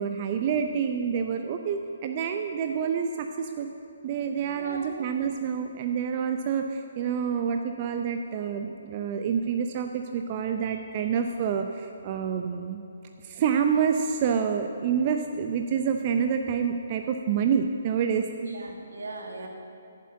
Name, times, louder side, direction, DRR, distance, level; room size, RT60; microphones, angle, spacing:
voice 1, 0.0-3.7 4.0-12.8 13.2-18.3, right 7 dB, 35° right, 6 dB, 0.5 m, -27 dB
voice 2, 4.5-4.9 18.4-19.5, right 2 dB, 80° right, 2 dB, 1.8 m, -38 dB
8.3 x 7.5 x 8.6 m, 2.9 s
hypercardioid pair, 150°, 0 cm